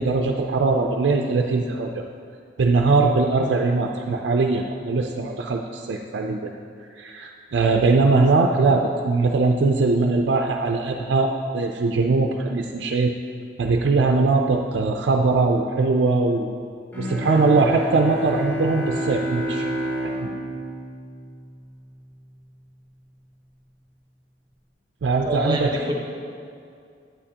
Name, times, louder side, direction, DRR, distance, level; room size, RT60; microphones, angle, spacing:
voice 1, 0.0-2.0 2.6-6.5 7.0-13.1 13.6-16.5 17.0-19.7 25.0-25.9, right 3 dB, 75° right, 2 dB, 0.4 m, -21 dB
Bowed string instrument, 16.9-22.1, right 1 dB, 10° left, 1.0 m, -29 dB
voice 2, 25.2-25.9, right 1 dB, 25° right, -1 dB, 1.1 m, -26 dB
8.8 x 8.7 x 2.8 m, 2.4 s
head